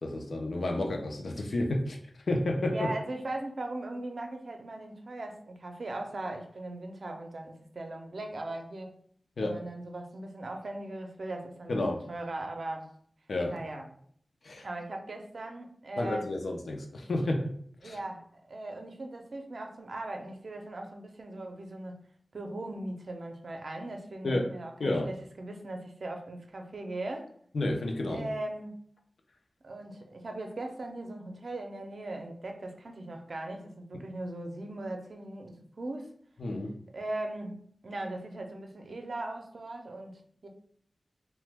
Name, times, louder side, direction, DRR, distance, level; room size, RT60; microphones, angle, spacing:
voice 1, 0.0-2.0 2.3-2.9 9.4-9.6 11.7-12.0 13.3-13.6 14.4-14.7 16.0-17.5 17.8-18.0 24.2-24.5 24.8-25.1 27.5-28.3 36.4-36.7, left 2 dB, 75° left, 3 dB, 0.5 m, -30 dB
voice 2, 2.7-9.0 9.4-12.9 13.5-13.9 14.6-16.3 17.8-22.0 22.3-27.3 28.1-28.8 29.6-36.1 36.9-40.5, right 2 dB, 65° right, 3 dB, 0.5 m, -39 dB
2.9 x 2.1 x 3.3 m, 0.63 s
wide cardioid pair, 85°, 0 cm